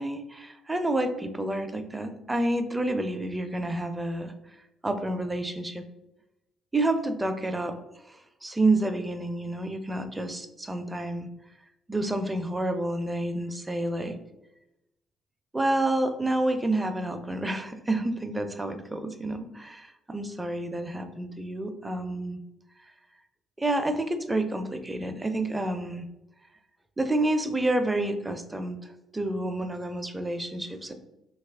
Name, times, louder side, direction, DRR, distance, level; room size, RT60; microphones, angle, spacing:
voice 1, 0.0-4.3 4.8-5.8 6.7-7.8 8.1-8.2 8.4-11.3 11.9-14.2 15.5-22.4 23.6-26.1 27.0-28.8 29.1-30.9, right 2 dB, 15° right, 7 dB, 0.5 m, -29 dB
2.9 x 2.4 x 3.4 m, 0.91 s
hypercardioid pair, 55°, 0 cm